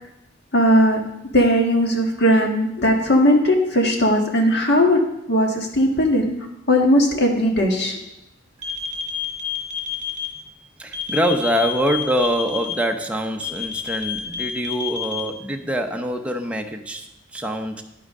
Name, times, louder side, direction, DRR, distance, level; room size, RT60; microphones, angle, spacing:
voice 1, 0.5-1.0 1.3-5.0 5.3-6.3 6.7-8.0, equal, 55° left, 2 dB, 1.5 m, -18 dB
sound 1, 8.6-10.3 10.9-12.7 13.4-15.2, left 7 dB, 35° right, 2.0 m, -28 dB
voice 2, 10.8-17.8, equal, 5° right, 3 dB, 0.7 m, -24 dB
10.5 x 10.0 x 3.7 m, 0.88 s
head